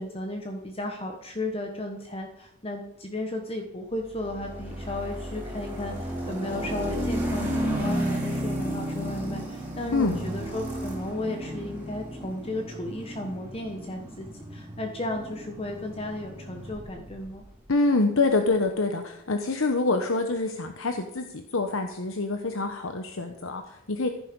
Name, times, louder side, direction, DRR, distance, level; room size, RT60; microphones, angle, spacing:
voice 1, 0.0-17.4, left 1 dB, 25° left, 3 dB, 1.2 m, -34 dB
sound 1, 4.1-17.3, equal, 10° right, 4.1 m, -33 dB
voice 2, 17.7-24.1, left 3 dB, 70° left, 6 dB, 1.1 m, -26 dB
15.0 x 10.5 x 5.3 m, 0.86 s
head